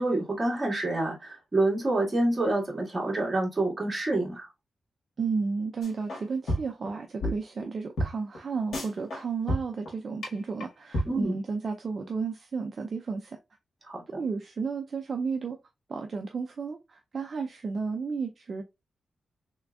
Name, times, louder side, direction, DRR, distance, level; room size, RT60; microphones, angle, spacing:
voice 1, 0.0-4.5 11.0-11.4 13.8-14.0, right 2 dB, 25° right, 1.9 m, -27 dB
voice 2, 5.2-13.4 14.1-15.6 15.9-18.6, right 4 dB, 45° right, 0.4 m, -32 dB
sound 1, 5.8-6.2 6.5-6.9 7.2-7.3 7.6-7.7 8.0-8.1 8.3-8.4 8.7-9.2 9.5-9.9 10.2-10.3 10.6-10.7 10.9-11.1, equal, 85° left, 1.7 m, -29 dB
3.7 x 3.4 x 2.3 m
wide cardioid pair, 125°, 0 cm